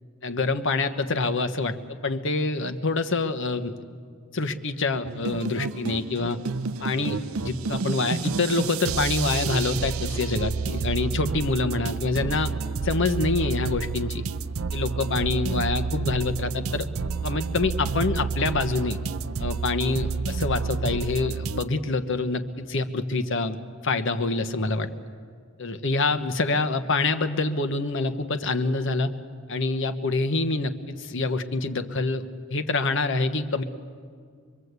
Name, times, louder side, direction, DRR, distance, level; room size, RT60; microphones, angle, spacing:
voice 1, 0.2-3.8 4.3-6.4 6.8-12.5 12.8-14.2 14.7-16.9 17.2-19.0 19.4-24.9 25.6-29.1 29.5-32.2 32.5-33.6, left 3 dB, 60° left, 9 dB, 1.2 m, -26 dB
sound 1, 5.1-21.6, right 5 dB, 75° right, 0.6 m, -30 dB
25.0 x 22.5 x 8.2 m, 2.1 s
head